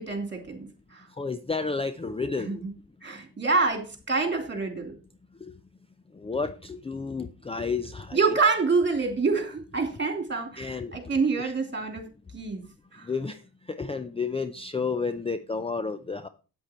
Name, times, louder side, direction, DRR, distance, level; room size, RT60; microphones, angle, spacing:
voice 1, 0.0-1.0 2.4-2.7 3.0-4.9 8.1-12.1 12.3-12.6 12.9-13.1, right 4 dB, 30° right, 6 dB, 3.0 m, -27 dB
voice 2, 1.2-2.6 6.2-8.2 10.6-10.9 13.1-13.4 13.7-16.3, left 4 dB, 15° left, 11 dB, 0.5 m, -31 dB
8.5 x 7.9 x 4.3 m, 0.34 s
cardioid pair, 85°, 37 cm